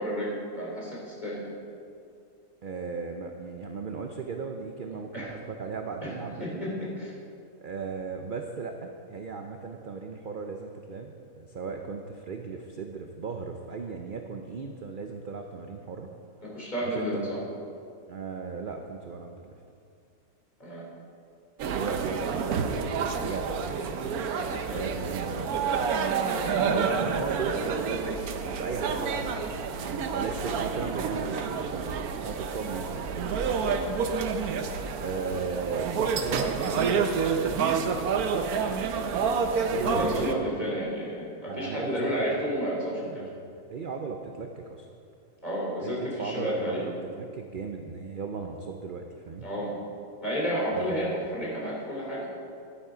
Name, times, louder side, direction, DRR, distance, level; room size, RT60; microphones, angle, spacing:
voice 1, 0.0-1.5 5.1-5.3 6.0-6.1 6.4-7.1 16.5-17.4 20.6-20.8 24.7-24.9 26.3-26.9 33.6-33.8 39.4-43.2 45.4-46.9 49.4-49.7 50.2-52.3, equal, 30° left, -5 dB, 3.2 m, -31 dB
voice 2, 2.6-6.6 7.6-16.1 16.8-17.3 18.1-19.6 21.6-24.1 24.7-25.8 26.6-33.1 35.0-38.4 39.7-40.5 41.5-42.4 43.0-43.3 43.7-44.9 45.8-49.5 50.7-51.2, right 4 dB, 50° right, 4 dB, 0.6 m, -36 dB
sound 1, 21.6-40.3, right 5 dB, 90° right, 1.2 m, -29 dB
11.0 x 10.0 x 5.0 m, 2.4 s
omnidirectional pair, 1.5 m